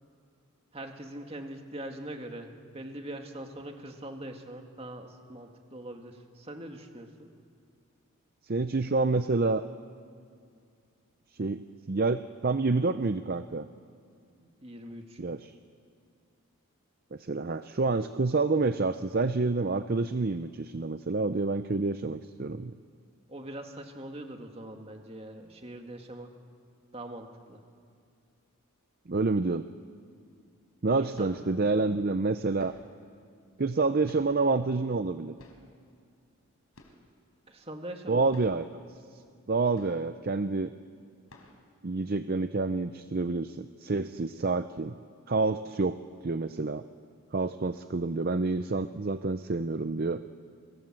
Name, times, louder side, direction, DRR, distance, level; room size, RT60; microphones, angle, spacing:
voice 1, 0.7-7.3 14.4-15.2 23.3-26.3 26.9-27.6 31.0-31.3 37.5-38.4, right 1 dB, 25° right, 4 dB, 2.1 m, -42 dB
voice 2, 8.4-9.6 11.4-11.6 11.9-13.7 15.2-15.5 17.1-22.7 29.1-29.7 30.8-32.8 33.6-35.3 38.1-38.7 39.5-40.7 41.8-44.9 45.3-46.0 46.2-46.8 47.3-50.2, right 3 dB, 45° right, 11 dB, 0.6 m, -28 dB
sound 1, 30.2-30.3 30.9-31.6 32.6-33.0 34.0-34.6 35.4-35.8 36.7-37.2 37.4-37.5 37.9-38.0 38.3-38.7 39.7-40.3 40.7-40.8 41.3-41.7, left 1 dB, 75° left, 4.0 m, -55 dB
29.5 x 24.0 x 7.6 m, 2.3 s
head